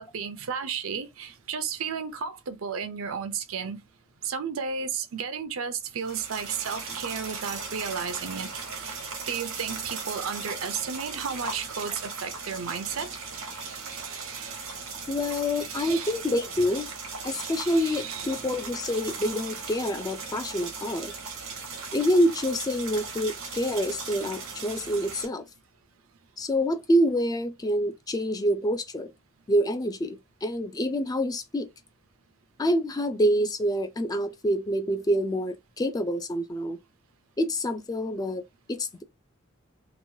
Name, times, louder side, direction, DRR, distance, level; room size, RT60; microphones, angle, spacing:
voice 1, 0.0-3.8 4.2-9.0 9.3-13.2 13.6-14.6 15.6-16.2 17.3-18.5, right 6 dB, 75° right, 0.6 m, -34 dB
sound 1, 6.0-25.3, right 4 dB, 90° right, 1.0 m, -38 dB
voice 2, 15.1-16.9 17.2-21.1 21.9-25.5 26.4-29.1 29.5-31.7 32.6-36.8 37.4-38.4 38.7-39.0, equal, 20° left, 0.4 m, -27 dB
3.0 x 2.2 x 2.7 m
head